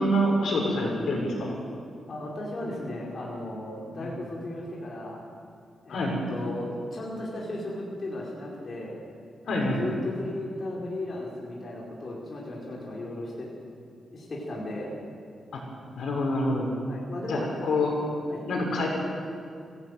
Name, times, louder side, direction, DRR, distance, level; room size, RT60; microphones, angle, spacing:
voice 1, 0.0-1.6 4.0-4.1 5.9-6.2 9.5-9.8 15.5-15.6 16.0-16.7 17.3-17.9 18.5-18.9, left 1 dB, 70° left, 0 dB, 6.1 m, -26 dB
voice 2, 2.1-5.2 5.8-9.0 9.4-13.5 14.1-15.0 16.9-17.4 18.3-18.4, left 1 dB, 35° left, -4 dB, 4.7 m, -35 dB
24.5 x 16.5 x 9.4 m, 2.4 s
wide cardioid pair, 155°, 0 cm